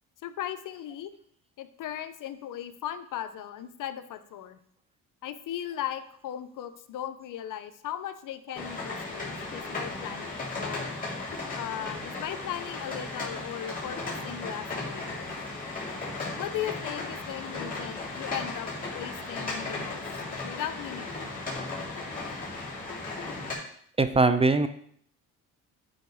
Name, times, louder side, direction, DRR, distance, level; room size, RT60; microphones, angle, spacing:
voice 1, 0.2-1.1 1.6-4.6 5.2-10.9 11.6-15.3 16.4-20.0 20.4-21.3, left 11 dB, 65° left, 11 dB, 0.7 m, -37 dB
sound 1, 8.5-23.5, left 3 dB, 25° left, 3.4 m, -36 dB
voice 2, 24.0-24.7, right 3 dB, 15° right, 10 dB, 0.5 m, -21 dB
9.1 x 3.9 x 4.8 m, 0.63 s
cardioid pair, 95°, 34 cm